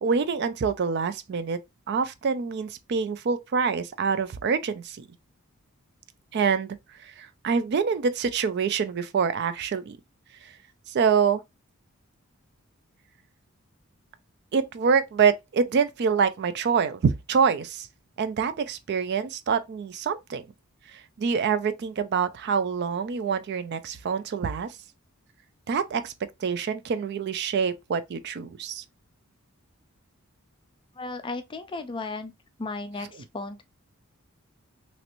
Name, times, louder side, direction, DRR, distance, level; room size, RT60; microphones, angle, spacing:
voice 1, 0.0-1.6 1.9-5.0 6.3-6.7 7.0-10.0 10.9-11.4 14.5-17.9 18.2-20.4 21.2-24.7 25.7-26.1 26.4-28.8, right 6 dB, 50° right, 0.3 m, -26 dB
voice 2, 31.0-32.3 32.6-33.6, left 3 dB, 20° left, 0.4 m, -35 dB
3.1 x 2.9 x 2.5 m
head